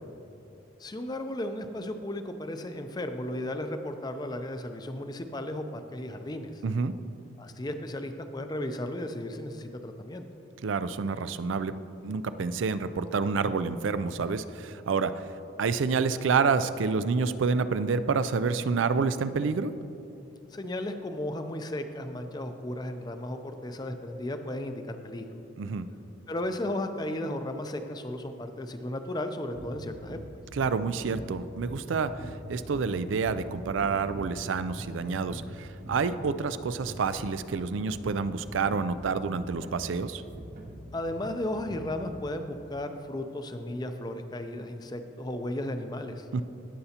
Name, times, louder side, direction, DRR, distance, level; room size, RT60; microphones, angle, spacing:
voice 1, 0.8-6.6 7.4-10.2 20.5-25.4 26.3-30.2 40.9-46.3, left 1 dB, 20° left, 7 dB, 0.5 m, -35 dB
voice 2, 6.6-6.9 10.6-11.7 12.0-15.2 15.6-19.7 25.6-25.9 30.5-32.1 32.5-40.2 46.3-46.4, right 5 dB, 85° right, 13 dB, 0.4 m, -28 dB
sound 1, 29.5-42.2, equal, 40° right, 0.7 m, -43 dB
17.5 x 6.8 x 2.9 m, 2.9 s
head